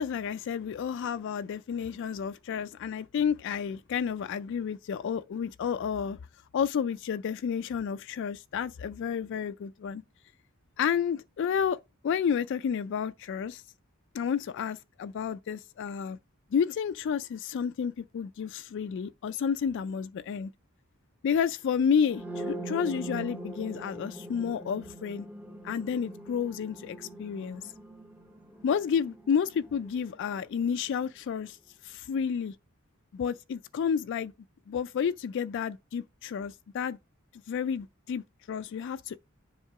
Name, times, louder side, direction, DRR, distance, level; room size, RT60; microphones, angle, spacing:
voice 1, 0.0-6.2 6.5-10.0 10.8-11.8 12.0-13.6 14.1-16.2 16.5-20.5 21.2-25.3 25.6-27.7 28.6-31.6 31.8-32.6 33.1-34.3 34.7-37.0 37.5-39.2, left 7 dB, 60° left, 0.3 m, -31 dB
sound 1, 22.0-29.9, right 2 dB, 10° right, 0.6 m, -41 dB
7.2 x 3.7 x 4.7 m
head